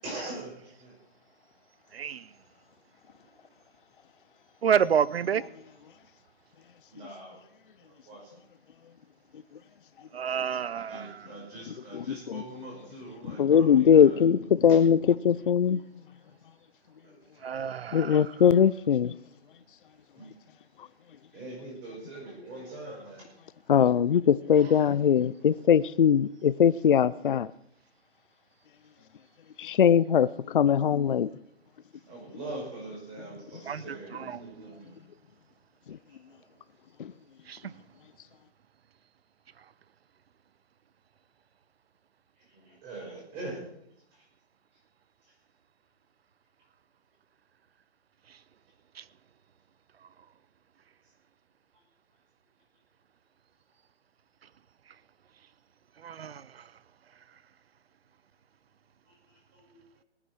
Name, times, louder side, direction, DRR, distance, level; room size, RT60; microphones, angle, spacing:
voice 1, 0.0-0.9 6.9-7.4 7.8-8.4 10.7-14.3 14.7-14.8 16.3-16.4 17.0-17.2 20.2-20.3 21.3-23.3 31.9-34.9 36.1-36.2 37.6-37.8 42.5-43.7 44.1-44.3 51.7-51.8 59.1-59.8, right 2 dB, 15° right, 5.5 m, -43 dB
voice 2, 1.9-2.3 4.6-5.4 10.1-11.3 17.4-18.3 33.7-33.8 34.1-34.6 37.5-37.6 49.0-49.1 56.0-56.6, right 8 dB, 60° right, 0.7 m, -29 dB
voice 3, 13.3-15.0 15.2-15.8 17.9-19.1 23.7-27.5 29.6-31.3 35.9-36.0 37.0-37.1, left 8 dB, 50° left, 0.5 m, -21 dB
18.0 x 9.8 x 6.3 m
hypercardioid pair, 165°, 34 cm